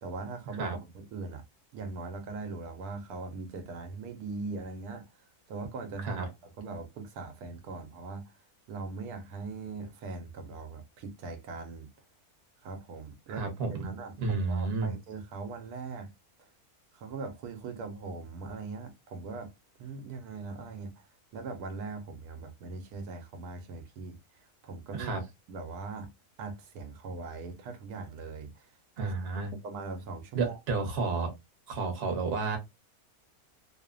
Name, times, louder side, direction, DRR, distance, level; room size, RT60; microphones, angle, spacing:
voice 1, 0.0-0.7 0.9-1.4 1.7-5.1 5.5-8.3 8.7-11.9 12.6-16.1 16.4-16.5 16.9-19.5 19.8-21.1 21.3-24.2 24.6-25.1 25.5-26.1 26.4-28.7 29.0-29.1 29.6-30.9, right 3 dB, 85° right, 1.1 m, -40 dB
voice 2, 13.4-13.9 14.2-14.9 24.9-25.2 29.0-29.5 30.3-31.3 31.7-32.6, right 4 dB, 50° right, 0.9 m, -31 dB
2.8 x 2.1 x 2.3 m
omnidirectional pair, 1.6 m